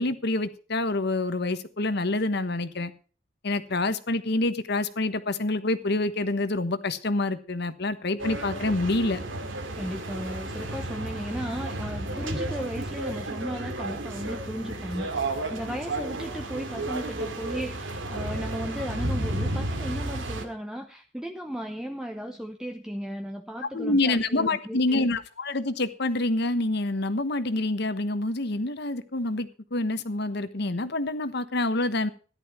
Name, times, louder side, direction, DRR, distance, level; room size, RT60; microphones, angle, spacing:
voice 1, 0.0-2.9 3.4-9.2 23.7-32.1, left 2 dB, 60° left, 11 dB, 1.2 m, -27 dB
sound 1, 8.2-20.4, right 1 dB, 80° right, 2.3 m, -32 dB
voice 2, 9.7-25.0, equal, 5° right, 3 dB, 0.9 m, -35 dB
14.0 x 11.0 x 4.5 m, 0.38 s
head